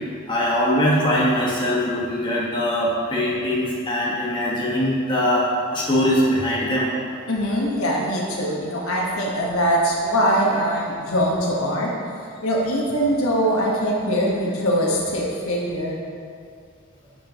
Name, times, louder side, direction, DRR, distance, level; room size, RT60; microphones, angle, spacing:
voice 1, 0.3-5.4 5.7-6.9, left 1 dB, 20° left, -7 dB, 1.5 m, -21 dB
voice 2, 7.3-11.9 12.4-16.0, equal, 90° left, -3 dB, 1.4 m, -22 dB
10.0 x 6.1 x 3.0 m, 2.3 s
head